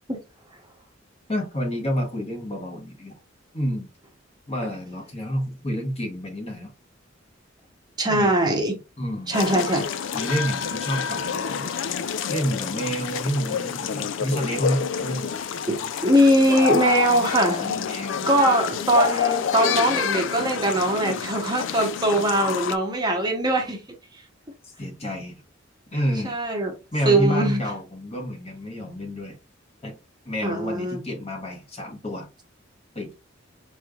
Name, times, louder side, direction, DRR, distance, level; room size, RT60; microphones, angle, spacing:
voice 1, 1.3-3.2 3.5-3.9 4.5-6.7 8.1-8.3 9.0-9.4 10.1-11.7 12.3-15.3 17.7-18.3 24.6-25.4 25.9-26.4 26.9-29.4 29.8-29.9 30.3-32.3 32.9-33.2, equal, 30° left, 1.1 m, -29 dB
voice 2, 8.0-8.8 9.3-9.9 15.7-17.8 18.3-23.8 26.2-26.7 27.1-27.6 30.4-31.0, right 1 dB, 20° right, 0.8 m, -21 dB
sound 1, 9.3-22.8, left 7 dB, 70° left, 0.3 m, -28 dB
4.9 x 3.1 x 2.4 m
head